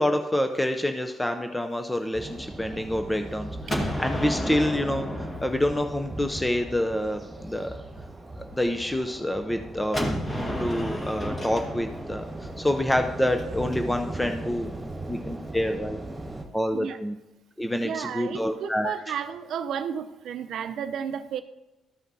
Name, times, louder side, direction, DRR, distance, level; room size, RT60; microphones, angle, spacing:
voice 1, 0.0-7.7 8.5-14.7 15.1-16.0 16.5-17.1 17.6-18.9, left 1 dB, 10° left, 6 dB, 0.6 m, -27 dB
sound 1, 2.1-16.4, right 1 dB, 20° right, 1.8 m, -38 dB
Gunshot gunfire, 3.7-6.5 9.9-13.8, equal, 25° left, 1.7 m, -32 dB
voice 2, 17.7-21.4, right 8 dB, 70° right, 10 dB, 0.6 m, -32 dB
13.5 x 5.7 x 2.7 m, 0.99 s
cardioid pair, 90°, 0 cm